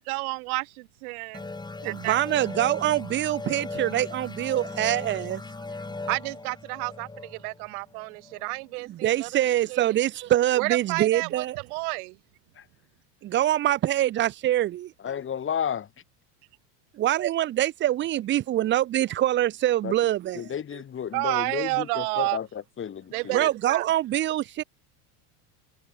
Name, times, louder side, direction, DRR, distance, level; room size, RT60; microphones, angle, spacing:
voice 1, 0.1-1.5 1.8-2.2 6.1-10.0 10.6-12.1 20.7-20.8 21.1-22.4 23.1-23.9, right 27 dB, 70° right, 1.2 m, -31 dB
sound 1, 1.3-8.6, left 3 dB, 10° left, 2.2 m, -38 dB
voice 2, 1.8-5.4 8.9-11.6 13.2-14.9 17.0-20.5 23.3-24.6, right 13 dB, 25° right, 0.4 m, -24 dB
voice 3, 15.0-15.8 19.8-19.9 20.4-22.5 22.8-23.5, left 8 dB, 25° left, 1.9 m, -32 dB
supercardioid pair, 115°, 45 cm